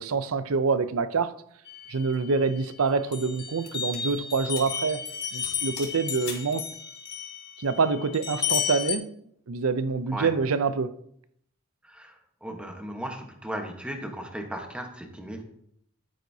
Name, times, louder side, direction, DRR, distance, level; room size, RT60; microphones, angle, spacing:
voice 1, 0.0-1.3 1.9-5.0 5.3-6.6 7.6-9.1 9.5-10.9, right 4 dB, 80° right, 0.6 m, -26 dB
sound 1, 1.7-2.7 3.1-9.0, left 8 dB, 50° left, 1.3 m, -33 dB
sound 2, 1.8-2.2 2.9-4.1 4.5-4.8 5.1-5.2 5.4-6.6, left 6 dB, 75° left, 3.9 m, -43 dB
voice 2, 11.8-15.4, right 1 dB, 5° right, 1.2 m, -36 dB
12.0 x 9.3 x 2.8 m
head